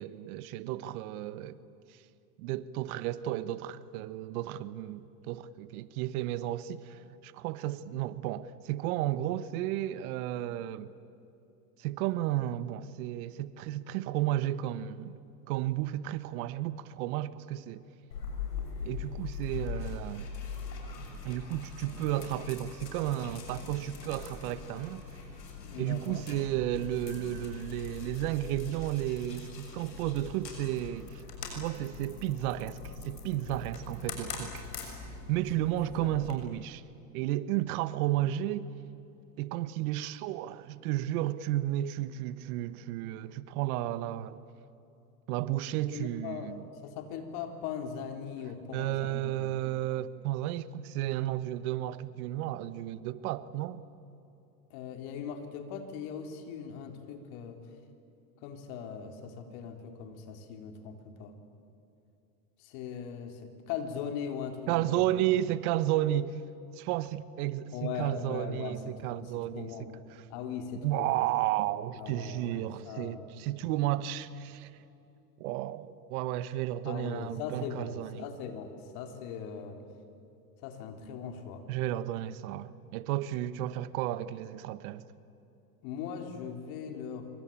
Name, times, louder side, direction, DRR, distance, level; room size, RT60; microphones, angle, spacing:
voice 1, 0.0-1.6 2.4-10.9 11.8-15.1 15.5-17.8 18.8-20.3 21.2-25.0 25.8-31.2 31.5-34.6 35.3-36.8 37.1-38.7 39.4-44.4 45.3-46.7 48.7-53.8 64.7-66.4 66.7-69.7 70.1-70.2 70.8-74.7 75.4-78.3 81.7-85.1, right 13 dB, 60° right, 1.3 m, -33 dB
sound 1, 18.1-36.3, left 5 dB, 90° left, 6.7 m, -42 dB
voice 2, 25.6-26.3 36.0-36.2 45.9-49.6 54.7-57.6 58.4-61.3 62.6-65.2 67.7-69.9 70.3-71.2 72.0-73.3 76.9-79.8 80.6-81.6 85.8-87.3, left 7 dB, 60° left, 3.9 m, -40 dB
26.0 x 24.5 x 8.8 m
hypercardioid pair, 100°, 48 cm